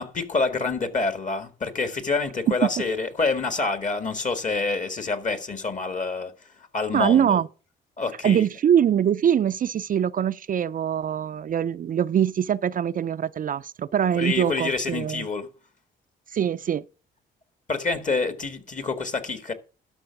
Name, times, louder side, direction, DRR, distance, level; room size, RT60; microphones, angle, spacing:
voice 1, 0.0-6.3 6.7-7.4 8.0-8.5 14.1-15.5 17.7-19.5, left 4 dB, 40° left, 1.9 m, -27 dB
voice 2, 6.9-7.5 8.2-15.3 16.3-16.8, right 9 dB, 45° right, 0.4 m, -23 dB
11.5 x 6.2 x 5.9 m
cardioid pair, 90°, 20 cm